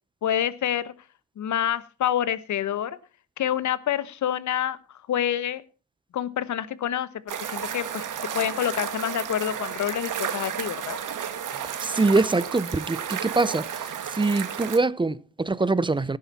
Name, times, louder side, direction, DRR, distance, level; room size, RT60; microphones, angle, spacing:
voice 1, 0.2-0.9 1.4-3.0 3.4-4.8 5.1-5.6 6.1-8.1 8.3-11.0, left 10 dB, 50° left, 1.2 m, -27 dB
sound 1, 7.3-14.8, right 8 dB, 55° right, 2.0 m, -32 dB
voice 2, 11.8-16.2, right 3 dB, 15° right, 0.7 m, -24 dB
17.0 x 8.6 x 4.3 m
hypercardioid pair, 50°, 37 cm